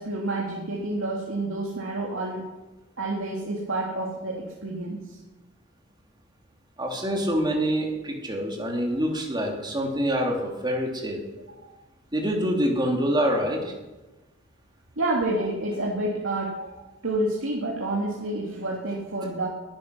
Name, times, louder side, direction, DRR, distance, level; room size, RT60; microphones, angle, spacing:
voice 1, 0.0-2.4 3.0-5.2 11.6-11.7 15.0-19.5, right 2 dB, 85° right, -2 dB, 2.5 m, -29 dB
voice 2, 6.8-11.2 12.1-13.6, equal, 20° right, 1 dB, 3.1 m, -26 dB
20.5 x 10.5 x 6.2 m, 1.1 s
head